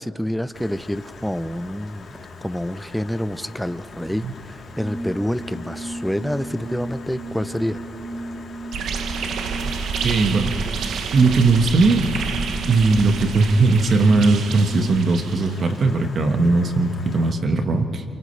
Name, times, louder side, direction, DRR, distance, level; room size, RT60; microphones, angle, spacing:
voice 1, 0.0-7.8, equal, ahead, 12 dB, 0.7 m, -27 dB
Stream, 0.5-17.3, left 4 dB, 50° left, 3.5 m, -43 dB
Organ, 4.7-15.0, right 2 dB, 30° right, 3.7 m, -35 dB
sound 1, 8.7-15.8, right 6 dB, 70° right, 1.3 m, -29 dB
voice 2, 10.0-10.5 11.1-12.0 12.7-18.0, right 3 dB, 50° right, 6 dB, 1.6 m, -18 dB
29.5 x 28.5 x 3.4 m, 2.7 s
cardioid pair, 90°, 0 cm